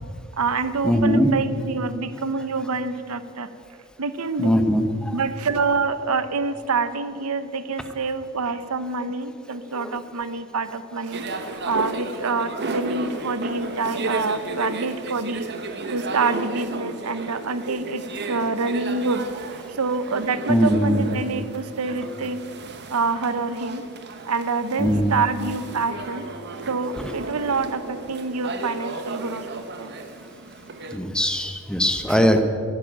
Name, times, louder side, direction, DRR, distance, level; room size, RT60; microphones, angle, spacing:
voice 1, 0.3-3.5 4.0-4.7 5.1-11.2 11.6-15.5 15.9-19.3 19.8-22.4 22.9-23.8 24.3-26.3 26.7-29.9, right 4 dB, 75° right, 13 dB, 0.8 m, -26 dB
voice 2, 0.8-1.3 4.4-5.2 9.7-10.0 11.3-11.5 12.7-12.8 20.5-21.1 24.8-25.1 27.0-27.1 30.9-32.4, equal, 5° left, 7 dB, 1.0 m, -21 dB
sound 1, 11.1-31.0, right 3 dB, 50° right, 1.3 m, -34 dB
14.0 x 11.5 x 8.9 m, 2.4 s
head